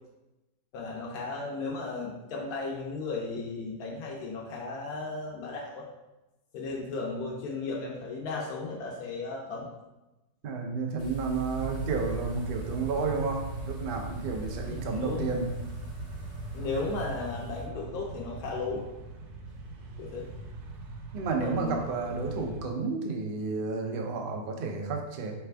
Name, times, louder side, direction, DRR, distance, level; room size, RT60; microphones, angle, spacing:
voice 1, 0.7-5.9 6.5-9.7 14.7-15.3 16.5-18.9 20.0-20.3 21.4-21.8, left 3 dB, 75° left, -2 dB, 1.2 m, -35 dB
voice 2, 10.4-15.5 21.1-25.3, right 4 dB, 55° right, 2 dB, 0.6 m, -31 dB
sound 1, 11.0-17.7, right 3 dB, 40° left, 0.5 m, -45 dB
sound 2, 11.5-22.6, right 3 dB, 85° right, 1.2 m, -40 dB
4.6 x 3.3 x 3.3 m, 1.0 s
omnidirectional pair, 1.7 m